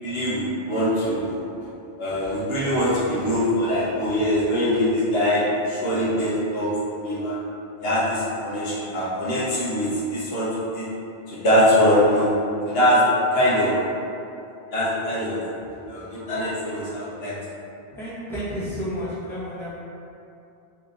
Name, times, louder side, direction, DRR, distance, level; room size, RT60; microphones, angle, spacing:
voice 1, 0.0-1.4 2.0-7.4 7.8-10.5 10.7-10.8 11.3-12.3 12.6-13.0 13.3-13.8 14.7-15.4 15.9-17.3, equal, 75° left, -9 dB, 1.2 m, -22 dB
voice 2, 17.9-19.7, equal, 5° left, -10 dB, 0.8 m, -31 dB
3.4 x 2.8 x 3.9 m, 2.7 s
omnidirectional pair, 1.0 m